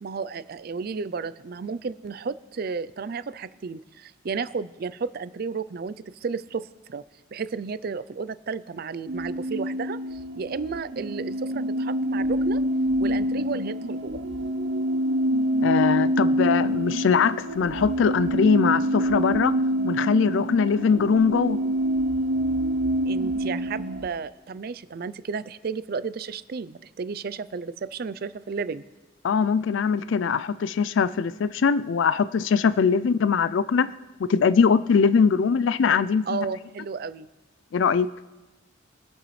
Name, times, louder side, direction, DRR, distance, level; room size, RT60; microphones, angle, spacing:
voice 1, 0.0-7.0 7.3-12.6 13.0-14.2 23.1-28.8 36.3-37.3, right 5 dB, 45° right, 0.4 m, -33 dB
sound 1, 9.1-24.1, equal, 80° right, 0.8 m, -26 dB
voice 2, 15.6-19.6 19.8-21.6 29.2-33.9 34.3-36.5 37.7-38.1, left 6 dB, 65° left, 0.4 m, -22 dB
24.0 x 9.1 x 3.2 m
head